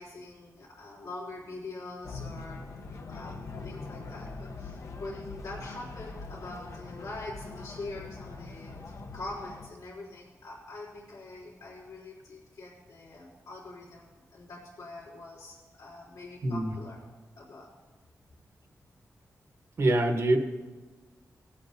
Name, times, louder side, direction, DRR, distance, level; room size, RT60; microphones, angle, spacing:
voice 1, 0.0-2.7 3.1-3.4 3.6-17.0 17.4-17.7, left 2 dB, 80° left, -8 dB, 3.4 m, -44 dB
sound 1, 2.0-9.7, left 3 dB, 60° left, 0.8 m, -42 dB
voice 2, 16.4-16.8 19.8-20.4, right 1 dB, 50° right, 4 dB, 1.1 m, -24 dB
20.0 x 8.5 x 2.7 m, 1.3 s
wide cardioid pair, 140°, 6 cm